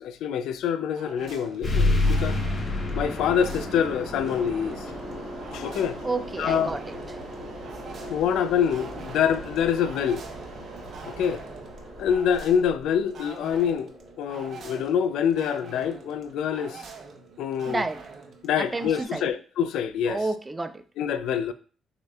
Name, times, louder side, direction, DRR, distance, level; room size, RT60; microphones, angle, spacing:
voice 1, 0.0-2.4 3.0-4.9 5.5-6.0 6.4-6.8 8.0-10.2 11.1-11.4 12.0-13.9 14.2-16.8 17.4-17.8 18.4-20.2 21.0-21.5, left 8 dB, 85° left, 0.3 m, -26 dB
sound 1, 0.9-19.0, right 5 dB, 60° right, 0.7 m, -46 dB
sound 2, 1.6-16.7, left 2 dB, 35° left, 1.9 m, -32 dB
Mechanisms, 1.6-14.0, right 3 dB, 80° right, 1.4 m, -43 dB
voice 2, 6.0-7.2 17.7-18.0 18.6-19.3 20.1-20.8, right 3 dB, 20° right, 0.4 m, -30 dB
6.4 x 2.7 x 2.3 m
cardioid pair, 90°, 0 cm